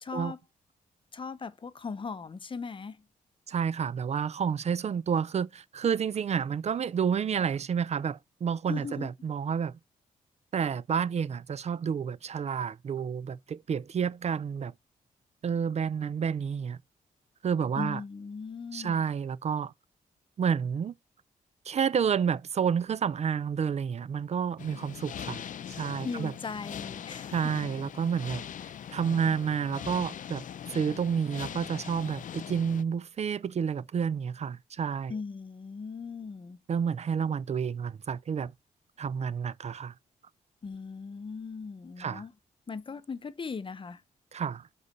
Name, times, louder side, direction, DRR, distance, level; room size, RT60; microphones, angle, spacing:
voice 1, 0.0-0.4 1.1-3.0 8.7-9.1 17.8-19.1 26.0-27.4 35.1-36.6 40.6-42.3 42.7-44.0, left 5 dB, 35° left, 0.9 m, -38 dB
voice 2, 3.5-9.8 10.5-14.7 15.4-16.8 17.4-18.0 18.7-19.7 20.4-20.9 21.7-25.4 25.8-26.3 27.3-28.4 28.9-30.4 30.7-35.1 36.7-38.5 39.0-39.9 42.0-42.2 44.3-44.7, right 7 dB, 50° right, 0.5 m, -30 dB
sound 1, 24.6-32.8, left 9 dB, 60° left, 0.6 m, -41 dB
8.1 x 4.1 x 6.5 m
cardioid pair, 95°, 15 cm